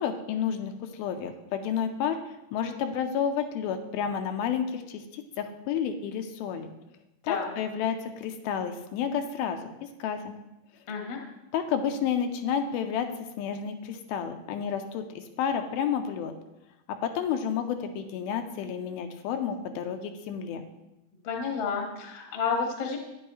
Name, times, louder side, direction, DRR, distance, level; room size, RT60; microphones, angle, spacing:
voice 1, 0.0-2.2 2.5-6.7 7.3-9.6 10.0-10.3 11.5-13.1 13.4-16.3 17.0-20.6, left 8 dB, 85° left, 7 dB, 2.4 m, -30 dB
voice 2, 10.9-11.2 21.2-23.0, left 5 dB, 55° left, 1 dB, 1.4 m, -30 dB
10.0 x 9.5 x 3.1 m, 0.94 s
omnidirectional pair, 4.4 m